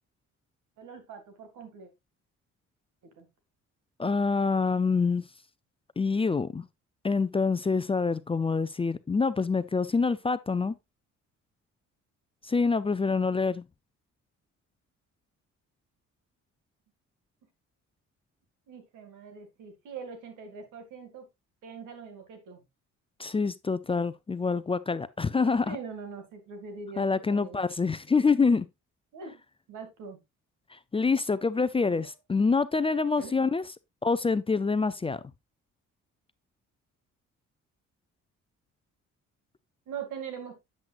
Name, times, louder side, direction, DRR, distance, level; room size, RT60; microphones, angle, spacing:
voice 1, 0.8-1.9 3.2-3.3 18.7-21.3 21.6-22.6 25.7-27.6 29.1-29.4 29.7-30.2 31.9-32.1 33.2-33.3 39.9-40.6, right 6 dB, 85° right, 2.3 m, -42 dB
voice 2, 4.0-5.2 6.0-6.7 7.0-10.7 12.5-13.6 23.2-25.8 27.0-28.7 30.7-33.6 34.0-35.2, left 4 dB, 20° left, 0.4 m, -26 dB
7.8 x 7.5 x 2.5 m
cardioid pair, 90°, 30 cm